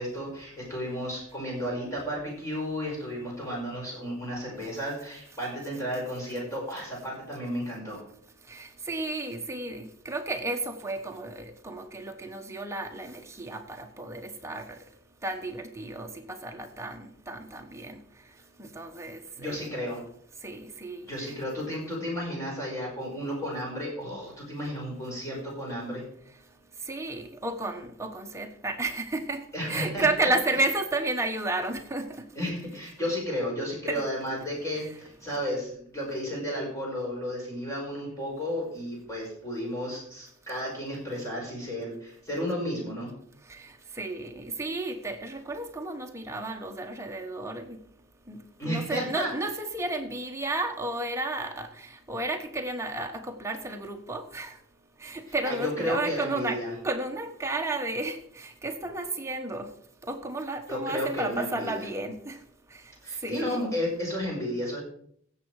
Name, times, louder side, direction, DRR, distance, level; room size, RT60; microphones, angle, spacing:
voice 1, 0.0-8.0 19.4-20.0 21.1-26.0 29.5-30.3 32.4-43.1 48.6-49.3 55.5-56.7 60.7-61.8 63.0-64.8, equal, 15° left, 5.1 m, -33 dB
voice 2, 8.5-14.8 15.2-18.0 18.6-19.7 20.4-21.4 26.9-29.4 29.7-32.2 33.9-34.1 34.7-34.9 43.5-43.7 44.0-47.8 48.3-48.4 48.6-54.6 55.0-59.7 60.0-62.4 63.2-63.6, right 2 dB, 15° right, 1.1 m, -32 dB
16.0 x 7.4 x 4.8 m
head